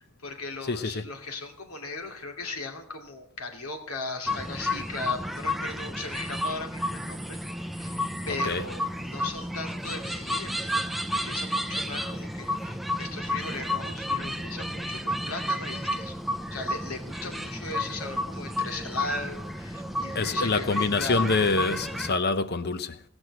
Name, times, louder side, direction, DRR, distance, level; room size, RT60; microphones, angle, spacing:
voice 1, 0.0-8.0 8.2-16.2 16.5-21.2, left 3 dB, 90° left, 2.5 m, -38 dB
voice 2, 0.6-1.1 8.3-8.7 20.1-23.0, left 3 dB, 50° left, 0.8 m, -26 dB
sound 1, 4.3-22.2, left 1 dB, ahead, 0.5 m, -31 dB
18.0 x 6.2 x 7.9 m
head